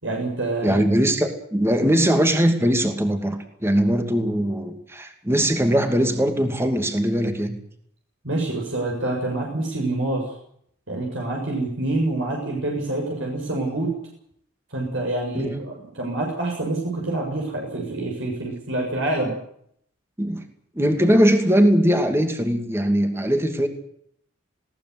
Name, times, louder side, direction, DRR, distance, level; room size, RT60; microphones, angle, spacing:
voice 1, 0.0-0.8 8.2-10.2 10.9-13.9 14.7-19.3, right 2 dB, 70° right, -1 dB, 7.2 m, -26 dB
voice 2, 0.6-7.6 15.3-15.6 20.2-20.4 20.7-23.7, equal, 10° right, 5 dB, 2.6 m, -20 dB
21.0 x 18.5 x 8.2 m, 0.68 s
head